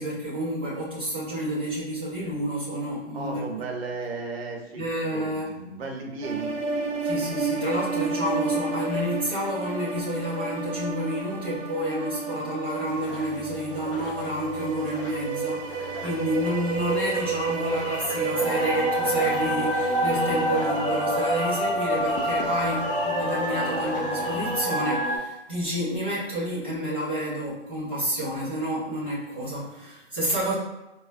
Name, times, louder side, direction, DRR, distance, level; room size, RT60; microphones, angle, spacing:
voice 1, 0.0-3.5 4.8-5.5 7.0-30.5, equal, 10° right, -11 dB, 0.3 m, -29 dB
voice 2, 3.1-4.8 5.1-6.6, right 3 dB, 55° right, 1 dB, 0.8 m, -34 dB
sound 1, 6.2-21.6, right 4 dB, 85° right, 0.6 m, -31 dB
sound 2, 12.9-24.7, left 3 dB, 50° left, 0.5 m, -40 dB
sound 3, 18.3-25.2, equal, 20° left, 0.8 m, -27 dB
4.8 x 2.0 x 2.5 m, 1.0 s
figure-of-eight pair, 140°, 36 cm